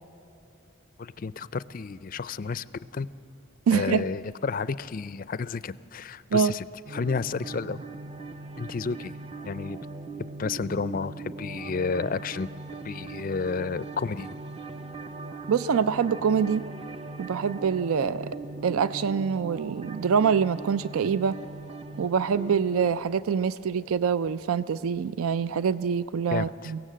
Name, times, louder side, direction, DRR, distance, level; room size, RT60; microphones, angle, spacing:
voice 1, 1.0-2.6 2.9-3.1 3.7-6.6 6.9-7.8 8.6-9.1 9.4-9.8 10.4-12.5 12.8-14.3 26.3-26.7, left 4 dB, 40° left, 17 dB, 0.4 m, -31 dB
voice 2, 3.7-4.0 6.3-6.5 15.5-16.7 17.2-18.4 18.6-21.4 22.0-26.8, right 6 dB, 85° right, 16 dB, 0.4 m, -25 dB
sound 1, 6.8-22.9, right 3 dB, 25° right, 0.5 m, -40 dB
23.5 x 17.0 x 7.5 m, 2.9 s
head